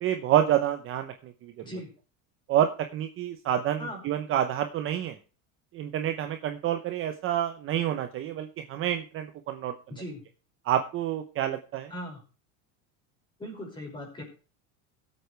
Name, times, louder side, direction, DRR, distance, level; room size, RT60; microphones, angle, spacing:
voice 1, 0.0-1.5 2.5-5.2 5.7-9.7 10.7-11.9, right 11 dB, 30° right, 7 dB, 0.8 m, -28 dB
voice 2, 9.9-10.2 11.9-12.2 13.4-14.2, equal, 10° left, 0 dB, 5.4 m, -38 dB
18.5 x 8.3 x 3.4 m, 0.35 s
cardioid pair, 165°, 41 cm